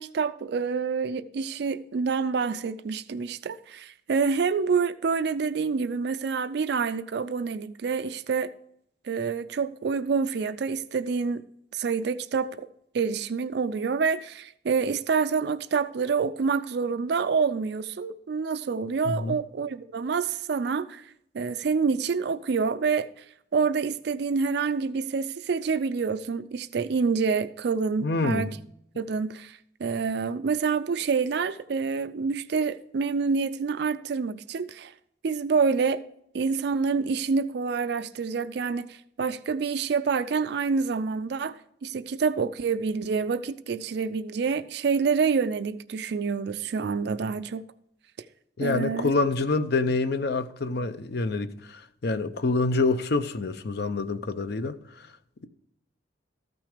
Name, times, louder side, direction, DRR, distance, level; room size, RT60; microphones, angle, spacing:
voice 1, 0.0-8.5 9.0-11.4 11.7-12.7 12.9-23.3 23.5-28.5 29.0-34.9 35.2-36.0 36.3-47.6 48.6-49.1, right 5 dB, 60° right, 0.4 m, -27 dB
voice 2, 19.1-19.4 28.0-28.5 48.6-55.1, left 3 dB, 60° left, 0.6 m, -27 dB
14.0 x 6.1 x 4.9 m
head